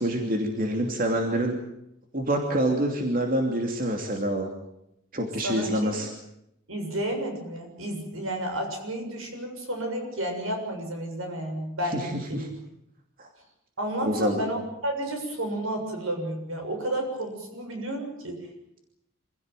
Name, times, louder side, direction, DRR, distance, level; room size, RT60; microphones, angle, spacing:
voice 1, 0.0-1.6 2.1-4.5 5.1-6.1 12.0-12.5 13.2-13.3 14.0-14.4, right 1 dB, 40° right, 2 dB, 2.9 m, -26 dB
voice 2, 5.4-6.0 6.7-12.4 13.8-18.4, right 1 dB, 80° right, 4 dB, 7.2 m, -31 dB
26.5 x 16.5 x 9.2 m, 0.82 s
head